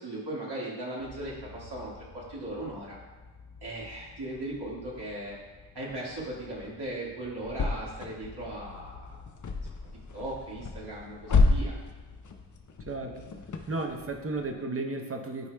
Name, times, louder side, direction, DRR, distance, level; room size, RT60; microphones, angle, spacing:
voice 1, 0.0-3.0 3.6-5.4 5.7-8.9 10.1-11.7, right 1 dB, 60° right, -6 dB, 1.8 m, -38 dB
sound 1, 1.0-14.6, left 3 dB, 45° left, 0.6 m, -34 dB
voice 2, 12.9-13.3 13.7-15.5, right 3 dB, 30° right, 4 dB, 0.7 m, -33 dB
12.0 x 4.8 x 2.2 m, 1.3 s
wide cardioid pair, 105°, 44 cm